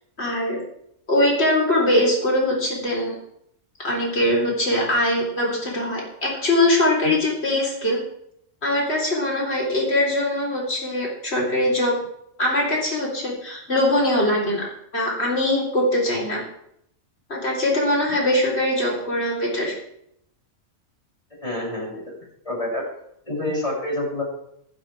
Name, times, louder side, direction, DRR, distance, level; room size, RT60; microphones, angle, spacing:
voice 1, 0.2-0.6 1.1-3.2 3.8-8.0 8.6-12.0 12.4-14.7 14.9-16.4 17.3-19.7, left 1 dB, 45° left, -2 dB, 4.5 m, -22 dB
voice 2, 21.4-22.0 22.4-22.8 23.3-24.2, left 1 dB, 25° left, -4 dB, 7.7 m, -27 dB
15.5 x 15.5 x 3.6 m, 0.73 s
omnidirectional pair, 1.5 m